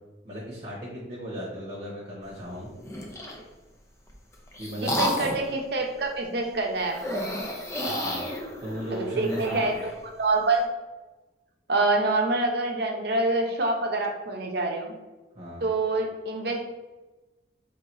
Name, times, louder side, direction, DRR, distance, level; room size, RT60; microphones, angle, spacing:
voice 1, 0.2-2.7 4.6-5.1 7.8-8.2 8.6-9.6 15.3-15.6, equal, 40° right, -6 dB, 1.1 m, -36 dB
sound 1, 2.8-3.4 4.1-5.5 6.9-9.9, left 1 dB, 15° left, 0.5 m, -31 dB
voice 2, 4.8-7.3 8.9-9.7 10.0-10.7 11.7-14.9 15.6-16.6, right 2 dB, 60° right, 1 dB, 0.7 m, -26 dB
3.5 x 2.8 x 4.7 m, 1.2 s
head